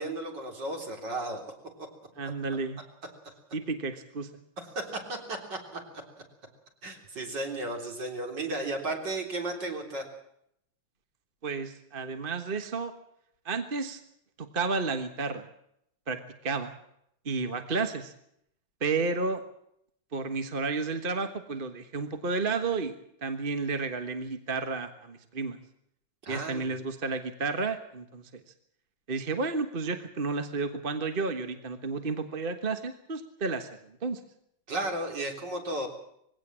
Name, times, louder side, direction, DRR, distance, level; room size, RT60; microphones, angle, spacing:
voice 1, 0.0-1.4 1.8-1.9 4.6-5.8 6.8-10.0 26.2-26.8 34.7-35.9, right 2 dB, 55° right, 2 dB, 4.2 m, -34 dB
voice 2, 2.2-2.8 3.5-4.3 11.4-12.9 13.4-14.0 14.4-15.4 16.1-16.7 17.2-18.1 18.8-19.4 20.1-22.9 23.2-25.6 26.3-28.3 29.1-33.7 34.0-34.2, right 4 dB, 30° right, 7 dB, 1.3 m, -31 dB
21.0 x 17.0 x 7.5 m, 0.74 s
omnidirectional pair, 2.3 m